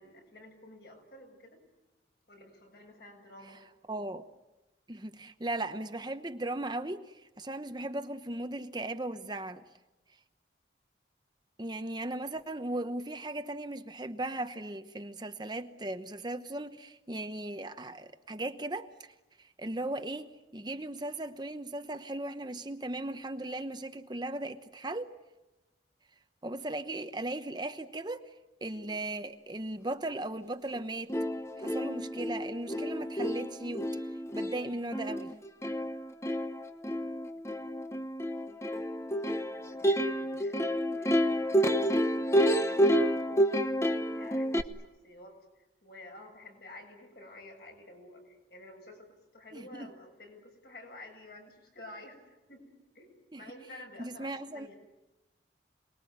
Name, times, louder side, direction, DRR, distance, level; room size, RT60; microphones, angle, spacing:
voice 1, 0.0-1.6 2.3-3.6 39.3-40.6 40.9-49.1 49.3-54.7, left 2 dB, 60° left, 7.4 m, -51 dB
voice 2, 3.9-4.2 4.9-9.6 11.6-25.1 26.4-28.3 28.6-31.1 31.6-33.9 34.3-35.3 49.5-49.9 53.3-53.5 54.0-54.7, right 2 dB, 25° right, 0.9 m, -37 dB
Plucked string instrument, 30.7-30.8 31.1-44.6, equal, 15° left, 1.0 m, -29 dB
28.0 x 21.0 x 9.4 m
head